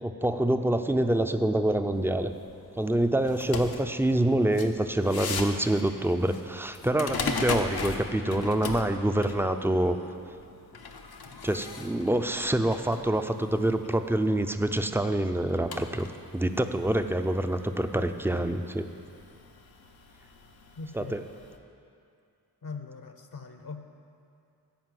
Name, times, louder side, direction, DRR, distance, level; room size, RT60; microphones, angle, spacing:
voice 1, 0.0-2.3 2.8-10.0 11.4-16.1 16.3-18.8 20.9-21.2, right 1 dB, 5° right, 8 dB, 0.5 m, -26 dB
sound 1, 1.9-21.6, left 4 dB, 90° left, 0.9 m, -40 dB
voice 2, 20.8-21.3 22.6-23.8, left 4 dB, 65° left, 6 dB, 0.8 m, -41 dB
14.0 x 5.3 x 7.7 m, 2.6 s
wide cardioid pair, 100°, 36 cm